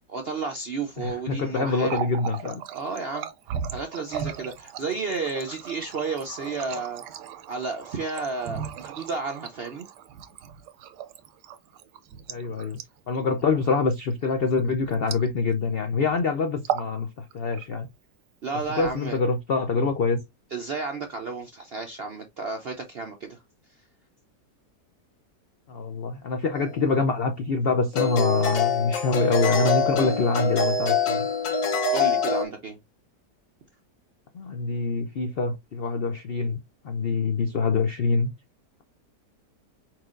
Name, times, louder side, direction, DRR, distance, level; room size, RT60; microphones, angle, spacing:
voice 1, 0.1-2.0 2.7-3.3 3.7-7.0 7.5-9.9 18.4-19.2 20.5-23.4 31.9-32.8, right 4 dB, 65° right, 0.6 m, -32 dB
voice 2, 1.0-2.6 12.3-12.8 13.1-17.9 18.7-20.2 25.7-31.3 34.3-36.6 36.8-38.3, left 4 dB, 75° left, 0.5 m, -25 dB
Water tap faucet, 1.7-15.7 16.0-16.2 16.5-17.0 17.3-18.0 18.6-19.4, right 8 dB, 80° right, 1.3 m, -37 dB
sound 1, 26.6-26.7 27.9-32.5, left 4 dB, 55° left, 1.1 m, -24 dB
4.8 x 4.5 x 2.4 m
omnidirectional pair, 1.8 m